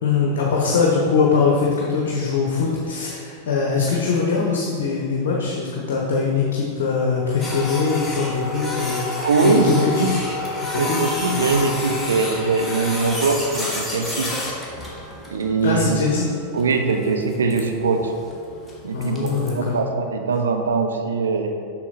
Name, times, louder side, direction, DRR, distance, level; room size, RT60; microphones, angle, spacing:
voice 1, 0.0-10.2 10.8-11.0 15.6-16.3 18.9-19.8, left 5 dB, 55° left, -2 dB, 1.0 m, -22 dB
Printer, 7.4-19.5, left 2 dB, 5° left, 1.7 m, -30 dB
voice 2, 9.2-10.1 10.8-14.3 15.3-16.0 16.5-18.1 18.8-21.5, right 4 dB, 70° right, 5 dB, 0.6 m, -22 dB
7.4 x 6.1 x 4.1 m, 2.5 s
figure-of-eight pair, 90°, 0 cm